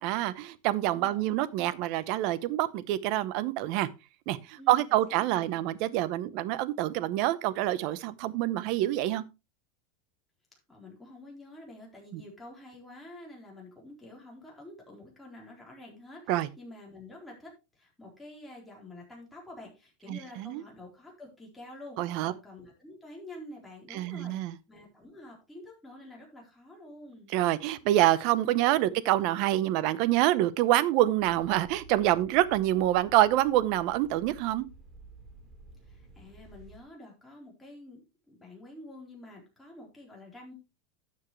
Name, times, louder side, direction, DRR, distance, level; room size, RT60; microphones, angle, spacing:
voice 1, 0.0-3.9 4.3-9.2 12.1-12.2 16.3-16.5 20.1-20.6 22.0-22.3 23.9-24.5 27.3-34.7, right 14 dB, 50° right, 0.8 m, -26 dB
voice 2, 0.8-1.4 4.6-5.6 10.7-27.3 28.9-29.0 35.8-38.0 38.3-40.5, left 1 dB, 5° left, 3.9 m, -48 dB
sound 1, 31.2-36.8, right 3 dB, 20° right, 2.6 m, -52 dB
12.0 x 7.3 x 3.2 m
supercardioid pair, 155°, 0 cm